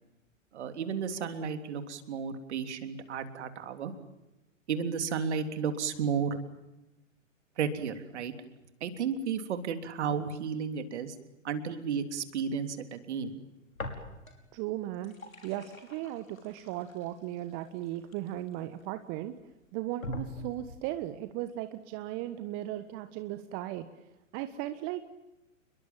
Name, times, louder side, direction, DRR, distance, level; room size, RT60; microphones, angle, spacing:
voice 1, 0.5-3.9 4.7-6.4 7.6-8.3 8.8-11.1 11.4-13.4, right 6 dB, 55° right, 8 dB, 3.4 m, -33 dB
sound 1, 13.7-14.5 14.8-18.8 19.4-19.5 20.0-20.9, left 1 dB, 85° left, 5.7 m, -43 dB
voice 2, 14.5-15.2 15.4-19.3 19.7-23.9 24.3-25.0, right 14 dB, 30° right, 10 dB, 1.4 m, -36 dB
30.0 x 22.5 x 7.4 m, 0.98 s
figure-of-eight pair, 115°, 40 cm